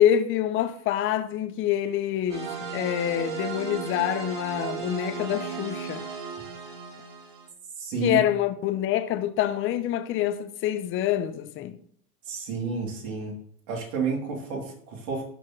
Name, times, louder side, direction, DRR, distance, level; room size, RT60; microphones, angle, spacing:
voice 1, 0.0-6.0 8.0-11.8, left 11 dB, 25° left, 0.6 m, -26 dB
sound 1, 2.3-7.5, right 6 dB, 75° right, 3.5 m, -35 dB
voice 2, 7.8-8.2 12.3-13.4 13.7-15.2, right 4 dB, 60° right, 3.1 m, -30 dB
12.5 x 4.4 x 3.2 m
hypercardioid pair, 120°, 48 cm